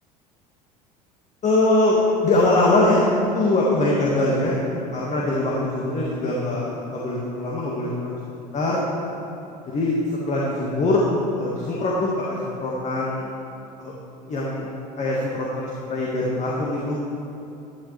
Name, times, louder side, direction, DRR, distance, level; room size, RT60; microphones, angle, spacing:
voice 1, 1.4-3.0 3.3-4.6 4.9-8.8 9.7-10.0 10.3-11.1 11.4-13.3 13.8-13.9 14.3-14.7 15.0-17.0, left 2 dB, 35° left, -5 dB, 1.8 m, -22 dB
12.0 x 11.5 x 3.4 m, 2.9 s
figure-of-eight pair, 70°, 21 cm